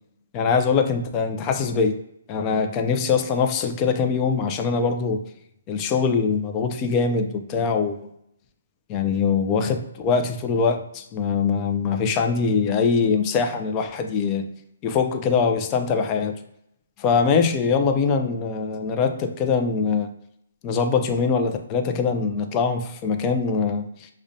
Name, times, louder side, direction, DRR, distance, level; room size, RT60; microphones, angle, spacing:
voice 1, 0.3-1.9 2.3-5.2 5.7-8.0 8.9-14.5 14.8-16.4 17.0-20.1 20.6-24.1, left 5 dB, 25° left, 6 dB, 0.4 m, -23 dB
5.0 x 2.1 x 2.6 m, 0.77 s
hypercardioid pair, 160°, 0 cm